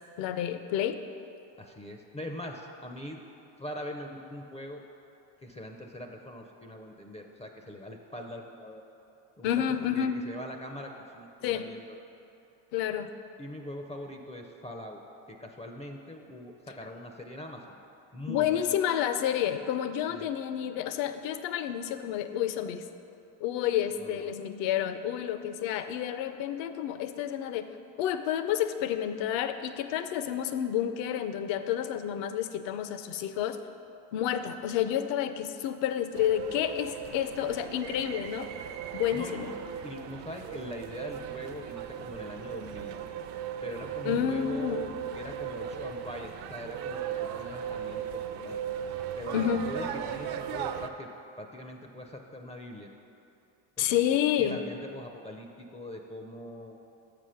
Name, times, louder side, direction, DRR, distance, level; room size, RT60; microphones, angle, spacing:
voice 1, 0.2-1.0 9.4-10.3 11.4-11.7 12.7-13.1 18.3-22.8 23.4-27.7 28.0-33.6 34.1-38.5 38.9-39.5 44.0-44.8 49.3-49.6 53.8-54.6, left 10 dB, 65° left, 10 dB, 0.6 m, -30 dB
voice 2, 1.6-3.2 3.6-4.8 5.4-8.8 9.4-11.8 13.4-15.0 15.3-17.8 18.1-18.7 20.1-20.3 24.0-24.3 39.1-39.3 39.8-42.9 43.6-48.6 49.2-51.1 51.4-52.9 53.8-56.8, left 1 dB, 15° left, 3 dB, 0.4 m, -42 dB
sound 1, 36.1-50.9, right 8 dB, 50° right, 0.5 m, -37 dB
7.3 x 5.1 x 5.6 m, 2.8 s
supercardioid pair, 80°, 50 cm